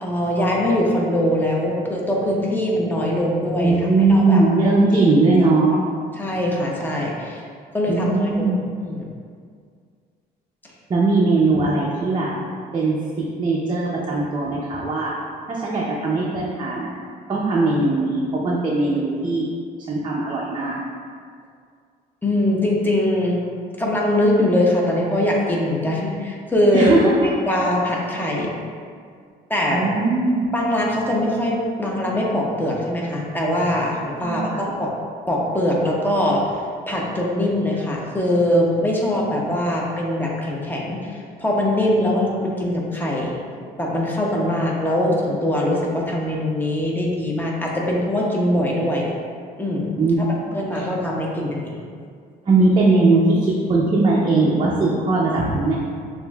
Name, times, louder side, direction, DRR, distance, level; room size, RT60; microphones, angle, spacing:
voice 1, 0.0-3.7 4.1-4.7 6.2-7.4 7.7-8.5 8.8-9.0 22.2-23.4 23.8-26.9 27.2-28.5 29.5-29.9 30.5-34.9 35.3-36.5 36.9-43.4 43.8-49.1 49.6-49.9 50.2-50.3 50.5-51.9, left 1 dB, 10° left, -3 dB, 0.7 m, -22 dB
voice 2, 3.6-5.8 7.9-8.7 10.9-12.3 12.7-15.1 15.5-16.9 17.3-19.5 19.9-20.8 26.7-27.4 29.7-30.4 34.2-34.6 50.0-50.8 52.5-55.8, right 3 dB, 30° right, -5 dB, 0.6 m, -19 dB
6.6 x 2.6 x 2.3 m, 2.1 s
cardioid pair, 110°, 17 cm